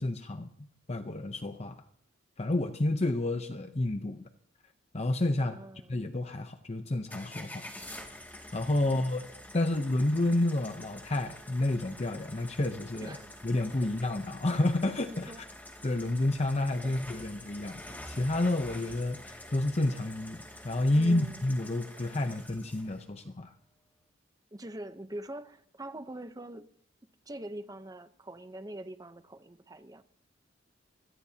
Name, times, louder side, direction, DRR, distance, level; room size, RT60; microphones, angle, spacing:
voice 1, 0.0-1.8 2.4-4.3 4.9-5.6 5.9-7.7 8.5-9.2 9.5-13.2 13.4-15.3 15.8-17.8 18.1-23.5, left 2 dB, 35° left, 0.8 m, -30 dB
voice 2, 5.4-6.0 8.8-9.1 13.0-13.3 13.8-13.9 15.1-15.4 16.8-17.0 20.9-21.4 24.5-26.6 27.3-30.0, right 1 dB, 20° right, 0.8 m, -44 dB
sound 1, 7.1-23.0, left 1 dB, 10° left, 2.3 m, -47 dB
24.0 x 20.5 x 2.9 m
head